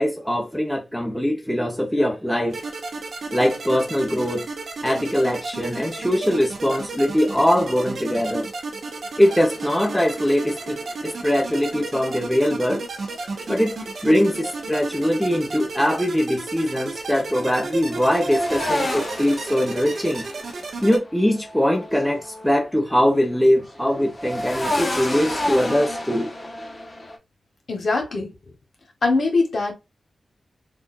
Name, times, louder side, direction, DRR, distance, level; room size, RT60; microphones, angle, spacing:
voice 1, 0.0-2.6 3.3-4.4 4.8-8.5 9.2-12.8 13.5-13.7 14.0-20.3 20.8-26.3, equal, ahead, 1.0 m, -22 dB
sound 1, 2.5-21.0, right 3 dB, 75° right, 0.6 m, -33 dB
sound 2, 9.2-12.1 13.0-15.6 17.3-22.8 23.1-27.2, left 1 dB, 30° left, 1.1 m, -32 dB
voice 2, 27.7-28.3 29.0-29.7, left 3 dB, 65° left, 1.2 m, -21 dB
3.7 x 2.5 x 2.5 m
cardioid pair, 55°, 0 cm